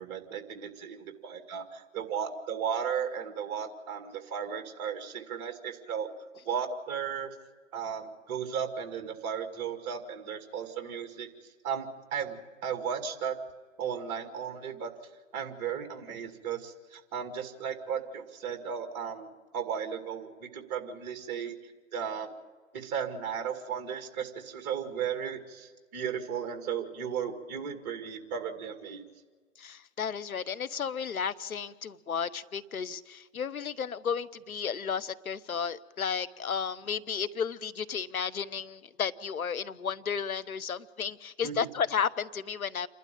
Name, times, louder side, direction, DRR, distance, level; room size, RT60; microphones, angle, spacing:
voice 1, 0.0-6.1 6.4-7.3 7.7-11.3 11.6-13.4 13.8-14.9 15.3-22.3 22.7-29.1 41.4-41.6, right 7 dB, 30° right, 6 dB, 2.2 m, -35 dB
voice 2, 29.6-42.9, left 7 dB, 85° left, 15 dB, 1.0 m, -33 dB
28.5 x 12.0 x 8.9 m, 1.5 s
hypercardioid pair, 140°, 41 cm